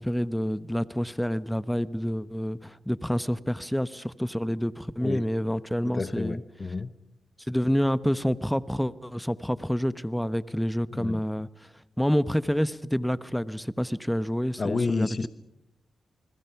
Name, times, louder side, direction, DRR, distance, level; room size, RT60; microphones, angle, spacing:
voice 1, 0.0-6.4 7.5-11.5 12.0-15.3, equal, 5° left, 15 dB, 1.0 m, -28 dB
voice 2, 5.8-6.9 10.9-11.2 14.6-15.3, left 3 dB, 40° left, 12 dB, 1.1 m, -29 dB
29.0 x 21.0 x 5.8 m, 0.82 s
cardioid pair, 75°, 0 cm